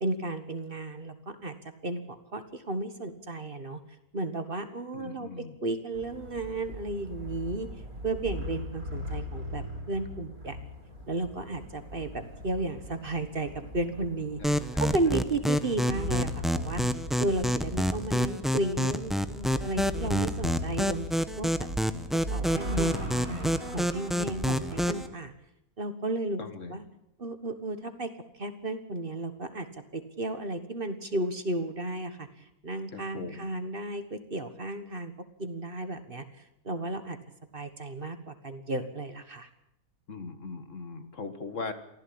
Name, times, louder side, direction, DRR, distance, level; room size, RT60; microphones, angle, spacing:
voice 1, 0.0-1.5 1.8-3.8 4.1-7.7 8.0-10.6 11.1-14.4 14.8-16.8 17.2-21.7 22.3-25.3 25.8-26.4 26.7-26.8 27.2-35.1 35.4-36.2 36.6-37.2 37.5-39.5, right 2 dB, 40° right, 9 dB, 1.6 m, -34 dB
voice 2, 4.9-5.6 14.4-15.2 26.4-26.8 32.9-33.5 40.1-41.7, left 4 dB, 55° left, 9 dB, 1.9 m, -40 dB
sound 1, 5.9-25.0, equal, 75° right, 5.8 m, -39 dB
sound 2, 14.4-25.1, equal, ahead, 0.7 m, -28 dB
24.0 x 15.5 x 8.7 m, 0.84 s
omnidirectional pair, 1.6 m